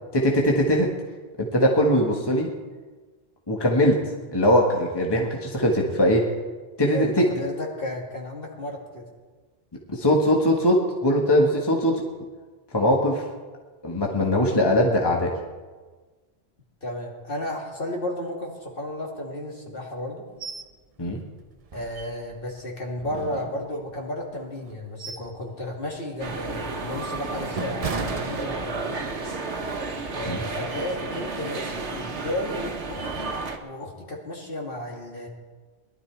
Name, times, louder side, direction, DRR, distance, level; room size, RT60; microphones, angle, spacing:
voice 1, 0.1-0.9 1.4-2.5 3.5-4.0 4.3-6.3 6.8-7.3 9.9-12.0 12.7-13.2 13.8-15.3 21.0-21.2 30.2-30.4, equal, 20° left, 0 dB, 1.5 m, -21 dB
voice 2, 6.9-9.0 16.8-20.3 21.7-29.0 30.1-33.3 33.6-35.3, left 1 dB, 55° left, -1 dB, 2.5 m, -33 dB
sound 1, 20.4-20.7 21.1-21.2 21.7-22.5 23.0-24.0 24.6-25.4 25.8-26.0 26.6-29.0 29.4-29.6, right 5 dB, 40° right, 0.7 m, -36 dB
sound 2, 26.2-33.6, right 3 dB, 90° right, 1.5 m, -32 dB
19.5 x 12.0 x 4.6 m, 1.4 s
omnidirectional pair, 1.1 m